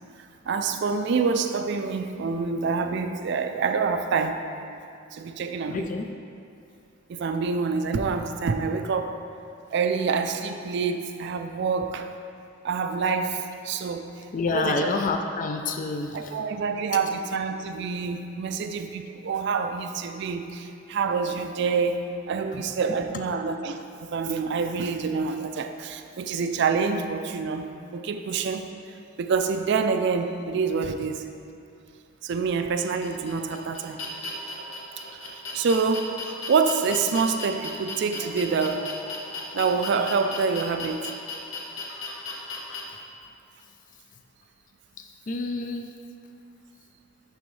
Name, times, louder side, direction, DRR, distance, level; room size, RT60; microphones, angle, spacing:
voice 1, 0.5-4.4 5.1-5.9 7.1-9.1 9.7-12.1 12.6-14.0 14.5-14.9 16.1-27.6 27.9-28.7 29.2-31.2 32.2-34.0 35.3-36.1 36.5-38.9 39.5-41.0, right 5 dB, 60° right, 7 dB, 0.4 m, -26 dB
voice 2, 5.7-6.1 14.3-16.3 22.5-23.0 45.0-45.9, left 3 dB, 40° left, 5 dB, 0.3 m, -29 dB
sound 1, 32.8-42.8, left 2 dB, 80° left, 1.0 m, -36 dB
11.0 x 3.8 x 3.2 m, 2.6 s
head